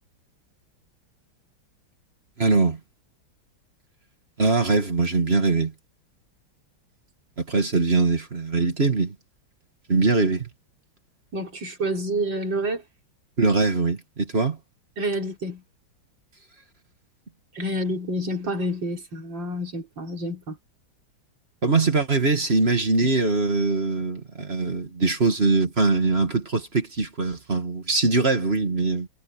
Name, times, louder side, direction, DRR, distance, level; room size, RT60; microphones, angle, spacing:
voice 1, 2.4-2.8 4.4-5.7 7.4-9.1 9.9-10.5 13.4-14.6 21.6-29.1, right 3 dB, 30° right, 2.2 m, -22 dB
voice 2, 11.3-12.8 15.0-15.6 17.5-20.6, right 1 dB, 60° right, 4.8 m, -28 dB
omnidirectional pair, 2.3 m